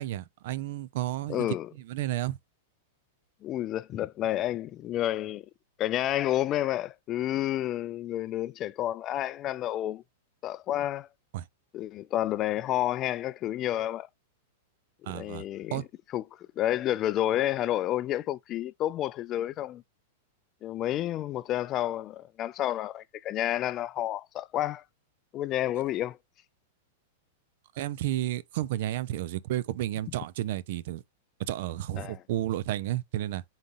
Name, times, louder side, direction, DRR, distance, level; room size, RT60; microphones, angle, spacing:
voice 1, 0.0-2.4 11.3-11.5 15.0-15.5 15.7-15.8 27.8-31.0 31.4-33.4, right 14 dB, 60° right, 0.4 m, -32 dB
voice 2, 1.3-1.7 3.4-5.5 5.8-10.0 10.4-11.1 11.7-14.1 15.1-15.8 16.1-16.2 16.6-19.8 20.6-24.8 25.3-26.2 32.0-32.2, left 13 dB, 35° left, 0.3 m, -30 dB
3.9 x 3.7 x 2.4 m
hypercardioid pair, 110°, 0 cm